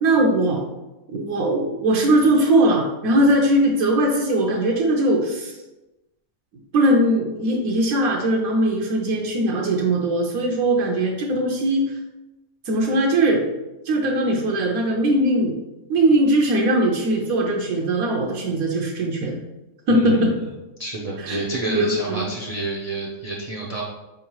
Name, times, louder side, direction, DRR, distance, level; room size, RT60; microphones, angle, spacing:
voice 1, 0.0-0.6 1.1-5.5 6.7-11.9 12.7-13.4 13.9-15.5 15.9-19.4 19.9-20.5 21.2-21.4 21.7-22.3, right 1 dB, 80° right, -1 dB, 1.1 m, -20 dB
voice 2, 19.9-20.3 20.8-23.8, right 2 dB, 50° right, -4 dB, 0.4 m, -29 dB
4.5 x 3.7 x 3.0 m, 1.0 s
omnidirectional pair, 1.5 m